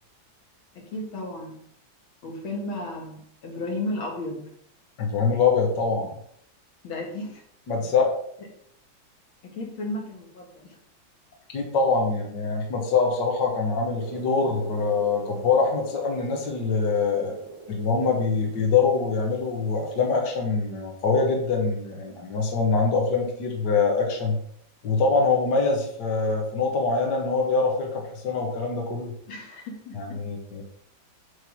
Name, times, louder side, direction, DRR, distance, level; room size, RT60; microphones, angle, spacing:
voice 1, 0.8-1.6 2.2-4.5 6.8-7.4 9.4-10.8 29.3-30.2, left 1 dB, 85° left, 1 dB, 2.4 m, -34 dB
voice 2, 5.0-6.2 7.7-8.2 11.5-17.4 17.7-24.4 24.8-29.1 29.9-30.6, left 4 dB, 60° left, 0 dB, 1.8 m, -24 dB
sound 1, 13.9-20.3, right 4 dB, 35° right, 2.1 m, -43 dB
8.1 x 3.4 x 6.0 m, 0.68 s
omnidirectional pair, 2.1 m